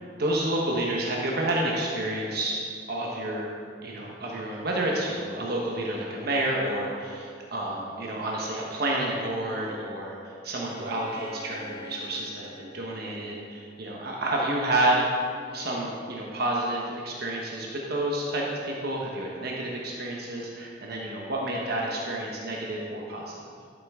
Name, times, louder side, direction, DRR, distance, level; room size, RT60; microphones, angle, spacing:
voice 1, 0.2-2.6 2.9-3.5 3.8-15.1 15.5-23.4, right 1 dB, 60° right, -3 dB, 1.2 m, -29 dB
Bowed string instrument, 10.5-14.3, left 1 dB, 75° left, 1.3 m, -46 dB
12.5 x 7.5 x 3.7 m, 2.3 s
head